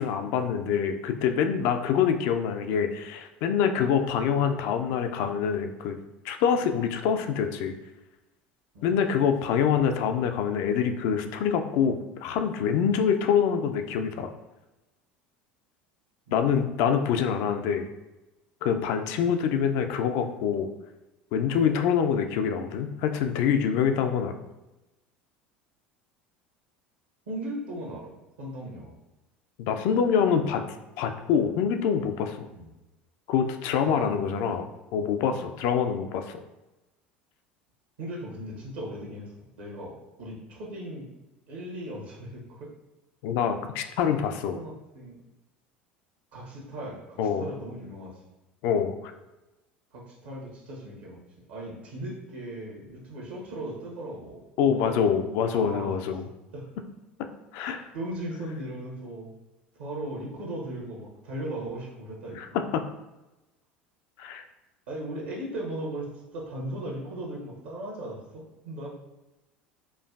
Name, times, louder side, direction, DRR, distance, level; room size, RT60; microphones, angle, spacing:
voice 1, 0.0-6.0 6.2-7.7 8.8-14.3 16.3-17.9 18.6-20.7 21.3-24.3 29.6-32.5 33.3-34.6 34.9-36.4 43.2-44.6 47.2-47.4 48.6-49.0 54.6-56.3 57.5-57.8 62.4-62.5 62.7-62.8 64.2-64.4, left 7 dB, 55° left, 7 dB, 0.3 m, -25 dB
voice 2, 16.3-16.6 27.3-28.1 28.4-28.9 32.5-32.7 33.8-34.7 38.0-39.3 39.6-41.1 41.5-42.7 44.5-45.2 46.3-48.2 49.9-51.2 51.5-55.9 56.5-56.7 57.9-59.3 59.7-62.6 64.9-68.9, right 1 dB, 70° right, -3 dB, 1.0 m, -37 dB
4.4 x 2.5 x 2.3 m, 1.0 s
figure-of-eight pair, 70°, 5 cm